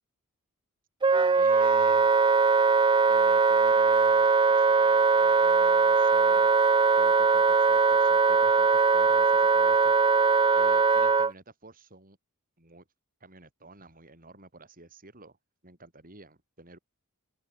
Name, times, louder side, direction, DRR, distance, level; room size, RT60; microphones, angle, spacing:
Wind instrument woodwind instrument, 1.0-11.3, right 4 dB, 20° right, 0.4 m, -21 dB
voice 1, 1.3-2.2 3.1-6.5 6.9-9.9 10.5-12.2 12.6-12.8 13.2-15.4 15.6-16.8, right 2 dB, 40° right, 6.3 m, -51 dB
open air
head